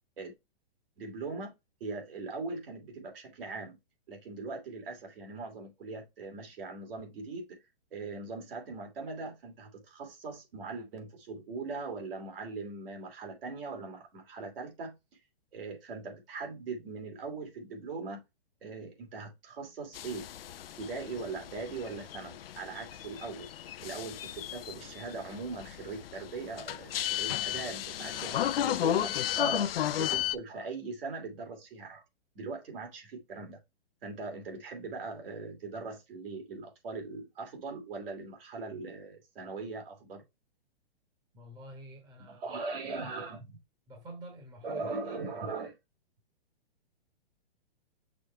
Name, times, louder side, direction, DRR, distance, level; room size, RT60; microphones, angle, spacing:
voice 1, 1.0-1.5 1.8-3.8 4.1-7.6 7.9-14.9 15.5-18.2 18.6-20.3 20.8-23.5 23.8-32.0 32.3-33.6 34.0-40.2 42.3-43.6 44.6-45.7, right 3 dB, 65° right, 2.9 m, -40 dB
sound 1, 19.9-30.4, left 11 dB, 65° left, 0.6 m, -34 dB
voice 2, 41.3-42.4 43.9-44.9, right 1 dB, 15° right, 1.3 m, -48 dB
6.2 x 4.5 x 3.3 m
hypercardioid pair, 155°, 31 cm